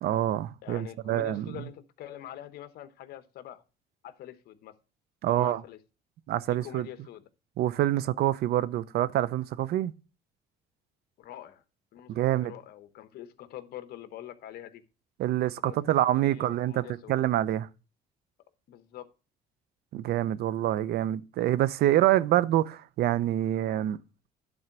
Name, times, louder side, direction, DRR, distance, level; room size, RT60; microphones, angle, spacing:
voice 1, 0.0-1.5 5.2-5.6 6.3-6.9 7.6-9.9 12.1-12.5 15.2-17.7 19.9-24.0, right 13 dB, 70° right, 0.6 m, -26 dB
voice 2, 0.6-3.6 4.0-4.7 5.3-5.8 6.5-7.2 11.2-11.6 11.9-14.8 15.6-16.0 16.2-17.2 18.7-19.1, left 12 dB, 70° left, 1.0 m, -45 dB
11.0 x 3.9 x 5.9 m
cardioid pair, 110°, 17 cm